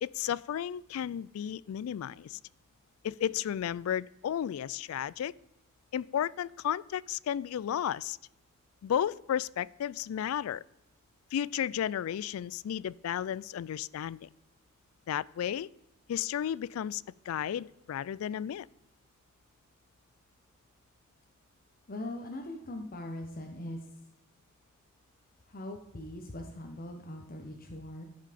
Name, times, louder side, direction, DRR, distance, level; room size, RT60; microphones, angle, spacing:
voice 1, 0.0-2.4 3.0-5.3 5.9-8.2 8.8-10.6 11.3-14.3 15.1-15.7 16.1-18.7, left 9 dB, 85° left, 0.3 m, -33 dB
voice 2, 21.9-23.8 25.5-28.0, left 1 dB, 45° left, 0.9 m, -41 dB
13.0 x 5.6 x 5.0 m
head